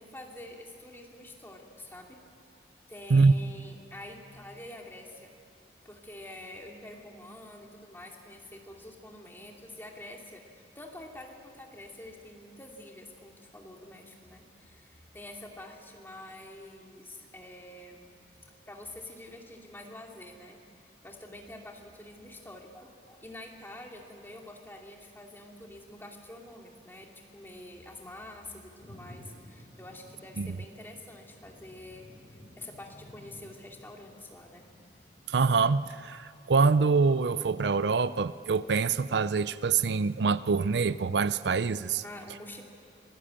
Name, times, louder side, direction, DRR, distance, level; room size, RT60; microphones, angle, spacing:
voice 1, 0.0-2.2 2.9-5.3 5.8-18.1 18.7-20.6 21.0-34.7 42.0-42.6, left 1 dB, 10° left, 0 dB, 2.6 m, -47 dB
Thunder, 28.8-36.0, left 1 dB, 35° left, 1.7 m, -53 dB
voice 2, 35.3-42.0, right 4 dB, 75° right, 15 dB, 0.5 m, -25 dB
26.0 x 18.0 x 8.7 m, 2.4 s
head